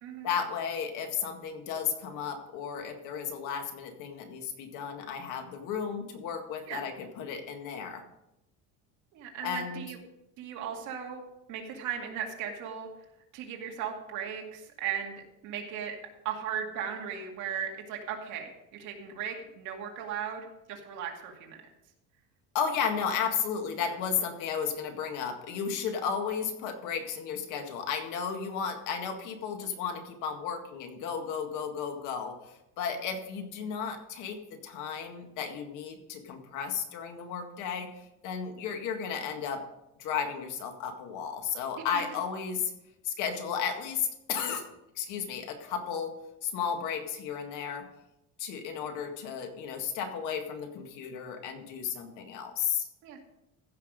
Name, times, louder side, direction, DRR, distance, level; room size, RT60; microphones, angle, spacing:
voice 1, 0.2-8.0 9.4-9.8 22.5-39.6 40.0-42.7 43.0-44.7 45.0-46.1 46.4-47.8 48.4-52.9, left 7 dB, 65° left, 5 dB, 1.9 m, -34 dB
voice 2, 9.1-10.0 10.4-11.2 11.5-12.9 13.3-16.0 16.2-21.6 41.9-42.0 53.0-53.2, right 8 dB, 60° right, 1 dB, 2.3 m, -37 dB
15.5 x 6.0 x 5.1 m, 0.87 s
cardioid pair, 165°, 32 cm